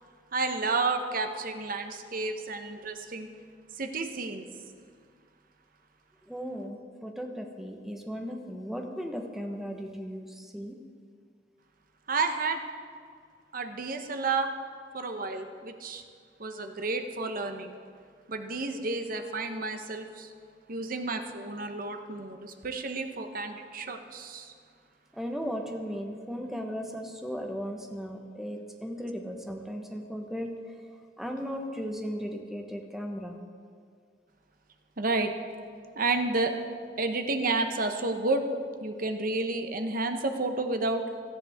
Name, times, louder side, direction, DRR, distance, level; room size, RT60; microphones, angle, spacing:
voice 1, 0.3-3.3 3.8-4.5 12.1-12.6 13.5-14.5 14.9-16.0 16.4-17.7 18.3-20.3 20.7-24.5 35.0-35.3 35.9-36.5 37.0-38.4 38.8-41.0, right 3 dB, 50° right, 6 dB, 1.0 m, -31 dB
voice 2, 6.3-10.8 25.1-30.5 31.2-33.4, equal, ahead, 3 dB, 1.1 m, -36 dB
17.5 x 13.0 x 3.6 m, 2.1 s
head